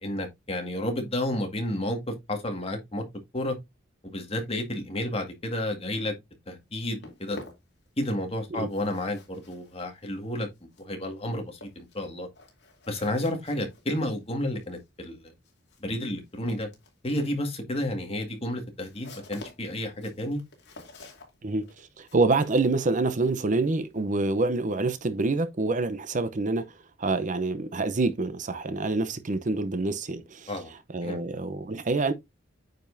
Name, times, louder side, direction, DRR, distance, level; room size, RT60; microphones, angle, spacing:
voice 1, 0.0-3.0 3.3-3.6 4.0-6.1 6.5-7.4 8.0-10.5 10.8-12.3 12.9-15.3 15.8-16.7 17.0-20.4 30.5-30.7 31.0-31.2, left 1 dB, 30° left, 2.0 m, -31 dB
Walk footsteps, 6.6-8.3 8.6-24.0, left 2 dB, 60° left, 2.4 m, -51 dB
voice 2, 21.4-30.5 30.9-32.1, right 3 dB, 40° right, 0.7 m, -27 dB
9.0 x 5.3 x 2.6 m
head